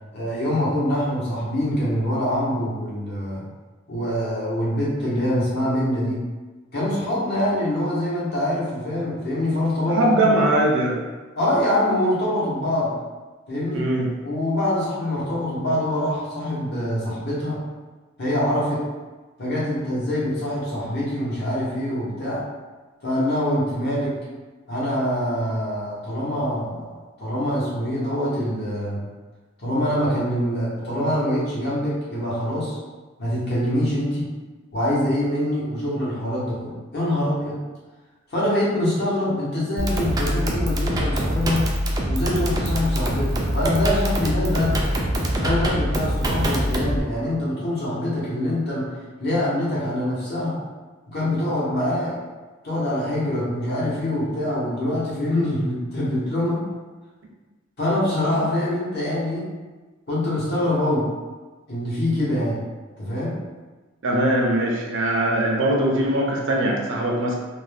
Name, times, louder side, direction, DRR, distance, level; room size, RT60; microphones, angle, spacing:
voice 1, 0.1-3.4 3.9-6.2 6.7-10.4 11.4-12.9 13.5-13.9 14.2-17.6 18.2-18.8 19.4-22.4 23.0-24.2 24.7-29.0 29.6-32.8 33.2-34.3 34.7-37.6 38.3-41.7 42.1-44.8 45.4-48.9 49.2-50.6 51.1-52.2 52.6-56.6 57.8-59.5 60.1-61.0 61.7-62.6 63.0-63.4, left 1 dB, 55° left, -7 dB, 1.0 m, -24 dB
voice 2, 9.9-11.0 13.7-14.1 64.0-67.4, right 1 dB, 65° right, -1 dB, 0.6 m, -21 dB
sound 1, 39.8-47.0, equal, 20° right, 0.3 m, -24 dB
2.6 x 2.2 x 3.3 m, 1.3 s
head